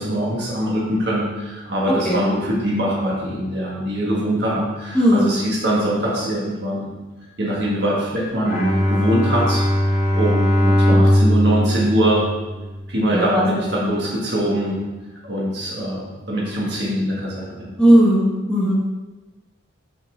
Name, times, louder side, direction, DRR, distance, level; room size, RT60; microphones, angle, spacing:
voice 1, 0.0-6.9 7.4-9.6 10.1-12.3 12.9-14.8 15.2-17.7, right 1 dB, 55° right, -5 dB, 1.5 m, -23 dB
voice 2, 4.9-5.3 13.1-13.6 17.8-18.8, equal, 5° left, -6 dB, 1.3 m, -16 dB
Bowed string instrument, 8.4-12.8, equal, 35° left, 2.3 m, -19 dB
6.3 x 5.8 x 3.8 m, 1.2 s
head